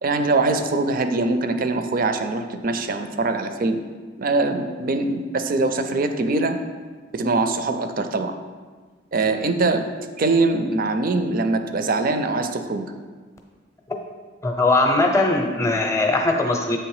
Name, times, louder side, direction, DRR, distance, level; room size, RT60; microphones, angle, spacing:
voice 1, 0.0-3.8 4.2-6.6 7.1-8.3 9.1-9.9 10.2-12.9, right 3 dB, 45° right, 8 dB, 0.4 m, -22 dB
voice 2, 14.4-16.8, left 2 dB, 15° left, 2 dB, 0.6 m, -20 dB
7.9 x 3.3 x 4.8 m, 1.4 s
head